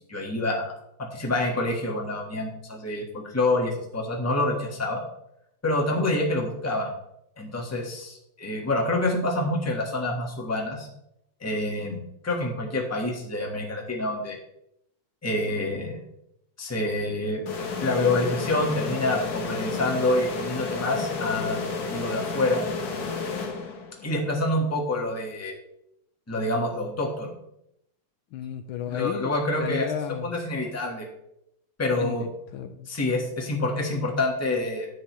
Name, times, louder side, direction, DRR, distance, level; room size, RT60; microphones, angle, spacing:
voice 1, 0.1-0.7 1.0-5.0 5.6-6.9 7.4-10.9 11.4-14.4 15.2-15.9 16.6-17.4 17.8-21.6 21.9-22.6 24.0-25.5 26.3-27.3 28.9-29.9 30.2-31.0 31.8-32.3 32.9-34.9, left 2 dB, 10° left, 0 dB, 1.1 m, -27 dB
sound 1, 17.5-24.1, left 4 dB, 50° left, 1.4 m, -31 dB
voice 2, 28.3-29.3 29.6-30.3 31.9-32.3 32.5-32.9, left 9 dB, 75° left, 8 dB, 1.4 m, -33 dB
10.0 x 8.1 x 3.1 m, 0.79 s
omnidirectional pair, 2.4 m